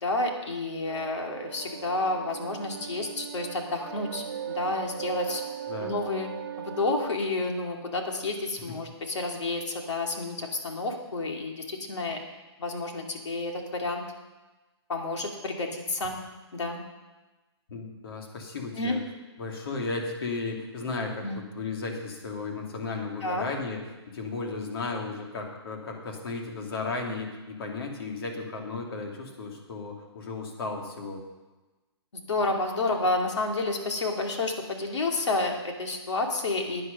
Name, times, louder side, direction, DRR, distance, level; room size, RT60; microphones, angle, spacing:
voice 1, 0.0-5.4 5.8-6.3 6.6-12.2 12.6-14.0 14.9-16.2 16.5-16.8 18.7-19.0 21.2-21.4 23.2-23.4 32.3-36.8, left 2 dB, 85° left, 2 dB, 2.5 m, -30 dB
sound 1, 0.9-7.1, right 9 dB, 50° right, 0.5 m, -38 dB
voice 2, 17.7-19.0 19.4-21.2 21.5-23.8 24.1-31.2, left 3 dB, 55° left, 1 dB, 2.6 m, -34 dB
11.0 x 9.7 x 5.3 m, 1.2 s
hypercardioid pair, 160°, 15 cm